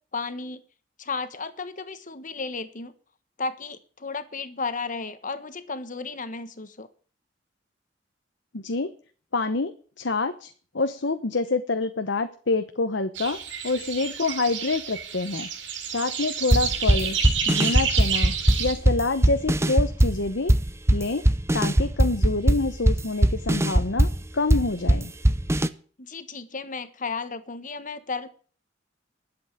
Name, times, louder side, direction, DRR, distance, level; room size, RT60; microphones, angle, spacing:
voice 1, 0.1-0.6 1.0-2.9 3.4-6.9 26.0-28.3, left 4 dB, 45° left, 12 dB, 1.3 m, -33 dB
voice 2, 8.5-8.9 9.3-13.4 13.6-15.5 15.9-17.2 17.5-18.3 18.6-20.5 20.9-21.2 21.5-25.1, left 3 dB, 70° left, 9 dB, 1.0 m, -27 dB
sound 1, 13.1-18.7, right 6 dB, 85° right, 4.4 m, -30 dB
sound 2, 16.5-25.7, right 1 dB, 15° right, 0.7 m, -21 dB
11.5 x 8.2 x 9.1 m, 0.43 s
head